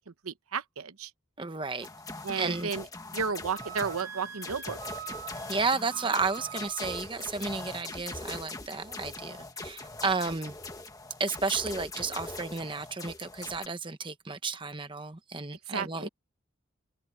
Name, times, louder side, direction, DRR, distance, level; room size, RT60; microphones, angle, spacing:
voice 1, 0.2-1.1 2.2-2.9 3.1-5.0 15.7-16.1, right 5 dB, 85° right, 1.0 m, -33 dB
voice 2, 1.4-1.9 2.4-2.7 5.5-10.6 11.2-16.1, right 4 dB, 20° right, 1.1 m, -32 dB
sound 1, 1.8-13.7, left 3 dB, 15° left, 1.5 m, -41 dB
Wind instrument woodwind instrument, 3.5-7.8, right 10 dB, 45° right, 4.0 m, -44 dB
open air
head